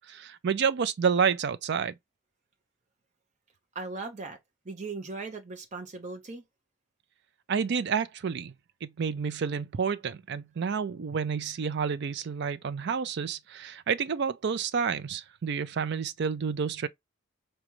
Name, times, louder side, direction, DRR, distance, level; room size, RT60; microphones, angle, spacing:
voice 1, 0.1-1.9 7.5-8.5 8.8-16.9, right 6 dB, 55° right, 0.4 m, -29 dB
voice 2, 3.7-4.4 4.6-6.4, right 3 dB, 35° right, 0.8 m, -38 dB
5.0 x 2.3 x 3.0 m
head